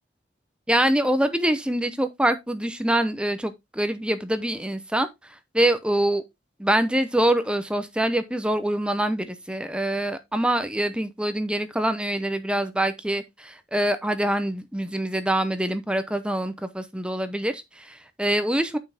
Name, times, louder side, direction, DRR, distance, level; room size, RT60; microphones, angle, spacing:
voice 1, 0.7-5.1 5.5-6.2 6.6-18.8, right 1 dB, 5° right, 0.8 m, -25 dB
9.9 x 5.6 x 3.5 m
head